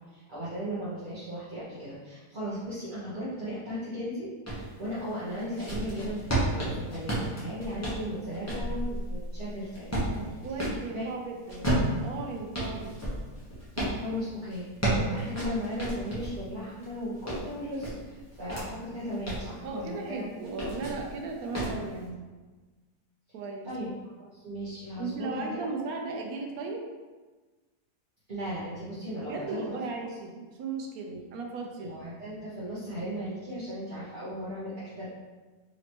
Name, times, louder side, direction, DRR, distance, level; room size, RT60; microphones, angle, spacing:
voice 1, 0.1-10.4 10.7-11.1 13.7-20.2 23.6-23.9 24.2-25.7 28.3-29.8 31.1-31.2 31.8-35.1, equal, 35° right, -11 dB, 1.0 m, -36 dB
sound 1, 4.5-4.7 5.2-10.8 11.5-14.0 14.5-16.4 16.8-18.7 19.1-19.5 20.4-21.1 21.5-21.8, right 1 dB, 10° left, 0.9 m, -31 dB
voice 2, 10.1-13.0 19.6-22.2 23.3-23.7 25.0-26.8 29.2-31.9, right 3 dB, 70° right, 2 dB, 1.0 m, -36 dB
4.2 x 3.0 x 2.9 m, 1.3 s
omnidirectional pair, 1.7 m